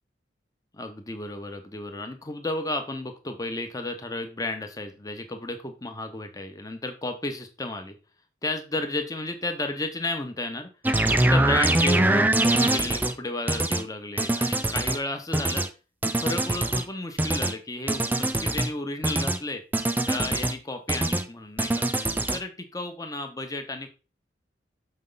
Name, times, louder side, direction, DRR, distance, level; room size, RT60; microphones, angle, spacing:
voice 1, 0.7-8.0 8.4-10.7 11.1-15.7 16.2-19.6 20.1-21.9 22.3-23.9, left 2 dB, 20° left, 6 dB, 0.9 m, -33 dB
sound 1, 10.8-13.1 13.5-13.8 14.2-15.0 15.3-15.7 16.0-16.8 17.2-17.5 17.9-18.7 19.0-19.4 19.7-20.5 20.9-21.2 21.6-22.4, right 1 dB, 10° right, 0.4 m, -23 dB
6.4 x 5.4 x 3.9 m, 0.33 s
head